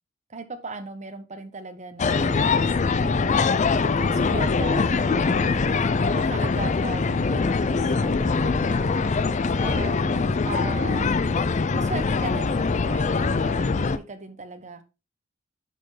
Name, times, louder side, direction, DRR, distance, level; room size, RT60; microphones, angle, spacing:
voice 1, 0.3-5.6 6.1-11.1 11.7-14.8, right 3 dB, 35° right, 9 dB, 0.9 m, -38 dB
sound 1, 2.0-14.0, left 4 dB, 35° left, 0.4 m, -23 dB
10.0 x 4.5 x 3.2 m, 0.28 s
head